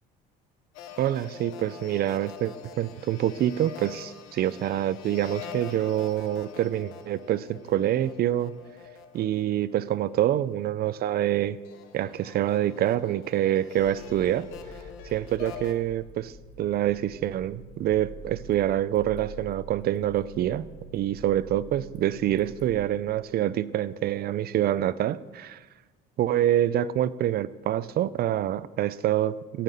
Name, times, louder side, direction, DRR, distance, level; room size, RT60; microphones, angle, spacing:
sound 1, 0.7-10.4 11.1-15.7, left 7 dB, 80° left, 1.1 m, -45 dB
voice 1, 1.0-8.5 9.1-11.6 11.9-14.5 15.1-20.6 20.9-25.6 26.2-29.6, right 12 dB, 50° right, 17 dB, 0.5 m, -26 dB
sound 2, 13.8-22.9, right 1 dB, 35° left, 1.6 m, -46 dB
16.5 x 5.9 x 6.7 m, 1.3 s
cardioid pair, 105°, 20 cm